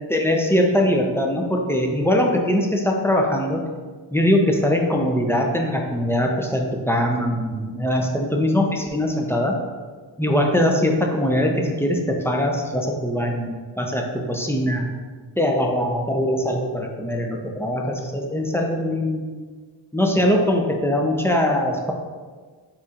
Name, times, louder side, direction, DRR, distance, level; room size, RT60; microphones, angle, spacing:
voice 1, 0.1-3.6 4.1-9.6 10.2-14.9 15.4-19.2 19.9-21.9, left 1 dB, 5° left, 1 dB, 0.6 m, -21 dB
4.3 x 4.2 x 2.5 m, 1.5 s
cardioid pair, 55°, 48 cm